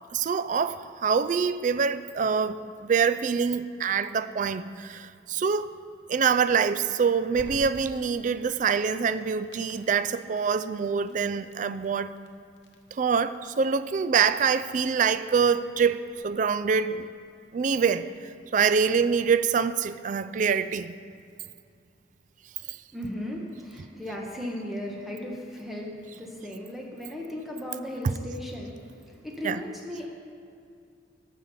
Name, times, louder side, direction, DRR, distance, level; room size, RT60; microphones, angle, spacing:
voice 1, 0.1-2.6 2.8-5.7 6.1-12.1 12.9-16.0 16.2-17.1 17.5-20.9 22.7-22.8 29.4-29.6, right 6 dB, 40° right, 0.3 m, -25 dB
Crackle, 7.3-18.1, left 1 dB, 60° left, 1.1 m, -52 dB
voice 2, 22.9-30.1, left 1 dB, ahead, 1.1 m, -36 dB
14.5 x 7.2 x 4.2 m
head